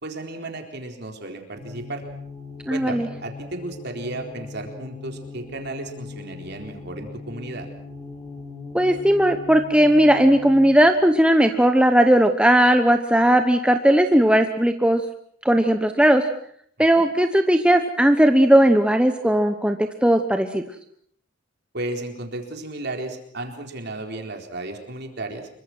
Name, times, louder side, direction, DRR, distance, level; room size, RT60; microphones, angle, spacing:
voice 1, 0.0-2.0 2.7-7.7 21.7-25.5, right 2 dB, 50° right, 4 dB, 4.1 m, -34 dB
sound 1, 1.6-10.9, left 4 dB, 15° left, 6.0 m, -39 dB
voice 2, 2.7-3.1 8.7-15.0 15.4-16.3 16.8-20.6, right 1 dB, 5° right, 6 dB, 1.0 m, -17 dB
27.0 x 23.5 x 6.2 m, 0.65 s
head